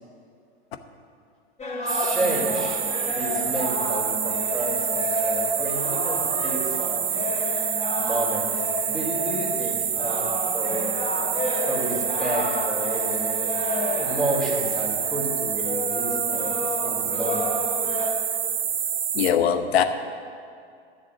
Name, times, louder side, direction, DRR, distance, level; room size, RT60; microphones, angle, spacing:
sound 1, 1.6-18.1, left 2 dB, 20° left, 3.8 m, -31 dB
voice 1, 1.8-7.1 8.0-8.5 8.9-11.0 11.6-13.6 13.9-17.5, right 1 dB, ahead, -5 dB, 3.9 m, -31 dB
sound 2, 1.9-19.3, right 8 dB, 20° right, 0.6 m, -27 dB
voice 2, 19.1-19.8, left 9 dB, 65° left, 9 dB, 1.0 m, -21 dB
10.5 x 7.3 x 9.3 m, 2.3 s
hypercardioid pair, 95°, 33 cm